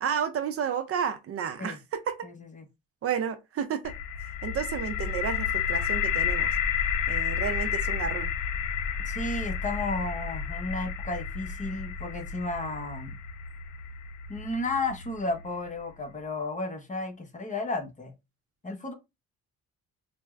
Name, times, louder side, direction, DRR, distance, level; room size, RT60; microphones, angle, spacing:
voice 1, 0.0-2.3 3.0-3.9 4.4-6.5 7.1-8.3, right 7 dB, 50° right, 0.5 m, -31 dB
voice 2, 2.2-2.6 9.1-13.2 14.3-18.1 18.6-18.9, left 2 dB, 25° left, 0.8 m, -33 dB
sound 1, 3.8-15.7, left 7 dB, 85° left, 0.5 m, -31 dB
4.2 x 2.1 x 2.3 m
cardioid pair, 90°, 30 cm